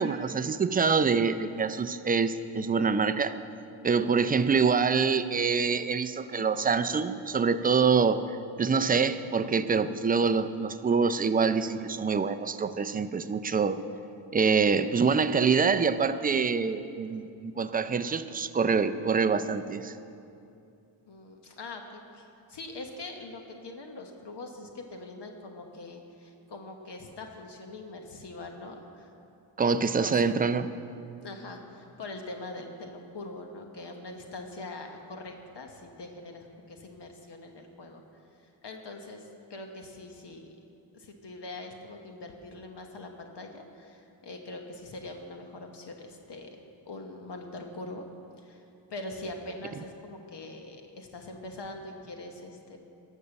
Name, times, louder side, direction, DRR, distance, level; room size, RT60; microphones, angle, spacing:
voice 1, 0.0-3.4 3.8-8.2 8.6-13.8 14.3-19.9 29.6-30.7, right 5 dB, 20° right, 11 dB, 0.3 m, -25 dB
voice 2, 21.1-29.1 30.0-30.3 31.2-38.0 38.4-40.5 40.9-46.6 46.8-48.1 48.4-48.6 48.9-52.8, left 2 dB, 55° left, 3 dB, 1.2 m, -43 dB
12.0 x 6.6 x 7.0 m, 2.6 s
cardioid pair, 90°, 48 cm